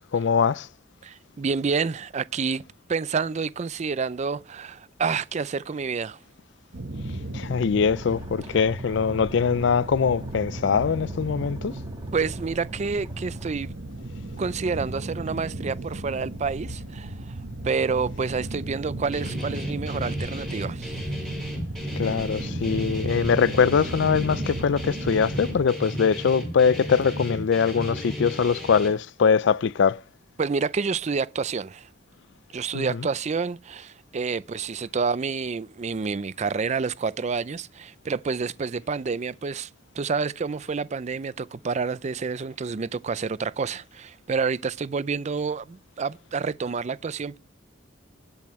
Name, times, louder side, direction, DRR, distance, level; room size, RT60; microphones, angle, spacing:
voice 1, 0.1-0.7 7.3-11.7 22.0-30.0 32.7-32.9, left 6 dB, 65° left, 0.4 m, -22 dB
voice 2, 1.0-2.6 2.9-6.2 12.1-13.7 14.4-17.4 17.6-21.0 30.4-31.9 32.5-39.7 39.9-47.4, right 5 dB, 35° right, 0.4 m, -28 dB
sound 1, 6.7-25.7, right 1 dB, 65° right, 1.5 m, -35 dB
sound 2, 7.9-13.5, equal, 20° right, 2.7 m, -47 dB
Guitar, 19.1-28.9, equal, 5° left, 6.2 m, -34 dB
19.5 x 7.1 x 3.1 m
head